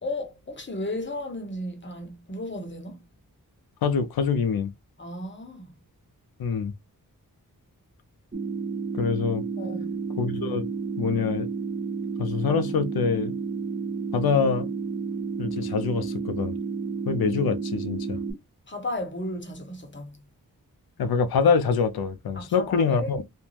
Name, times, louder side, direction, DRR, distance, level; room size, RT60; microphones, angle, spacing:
voice 1, 0.0-3.0 5.0-5.7 9.6-10.0 18.7-20.2 22.3-23.2, left 1 dB, 30° left, 0.8 m, -34 dB
voice 2, 3.8-4.7 6.4-6.7 8.9-9.4 10.2-10.7 11.0-11.5 12.2-13.4 14.1-14.7 15.4-16.6 17.1-18.2 21.0-23.2, left 5 dB, 80° left, 0.6 m, -25 dB
sound 1, 8.3-18.3, right 5 dB, 30° right, 1.1 m, -31 dB
2.5 x 2.2 x 3.1 m
wide cardioid pair, 95°, 36 cm